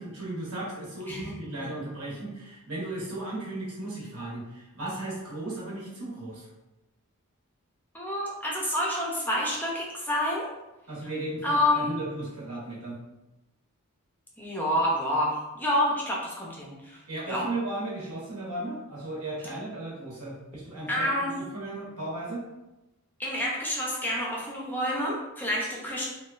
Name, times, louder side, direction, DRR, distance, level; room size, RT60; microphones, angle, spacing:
voice 1, 0.0-6.5 10.9-13.0 17.1-22.5, right 2 dB, 80° right, -5 dB, 0.9 m, -36 dB
voice 2, 7.9-10.5 11.4-12.0 14.4-17.0 17.3-17.5 20.9-21.3 23.2-26.1, left 1 dB, 10° left, -4 dB, 0.4 m, -28 dB
2.9 x 2.2 x 2.3 m, 0.99 s
head